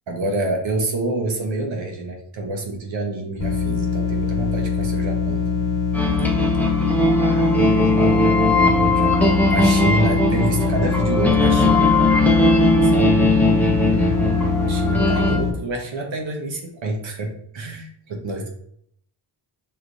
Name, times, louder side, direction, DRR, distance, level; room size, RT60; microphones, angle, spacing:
voice 1, 0.1-5.7 8.9-11.9 12.8-13.3 14.7-18.5, right 2 dB, 75° right, 2 dB, 1.0 m, -27 dB
sound 1, 3.4-15.5, left 5 dB, 85° left, 1.3 m, -23 dB
sound 2, 5.9-15.4, left 2 dB, 5° left, 0.6 m, -18 dB
voice 2, 7.2-8.7 9.9-10.1, right 5 dB, 55° right, 3 dB, 0.6 m, -35 dB
4.7 x 3.3 x 2.6 m, 0.68 s
cardioid pair, 75°, 46 cm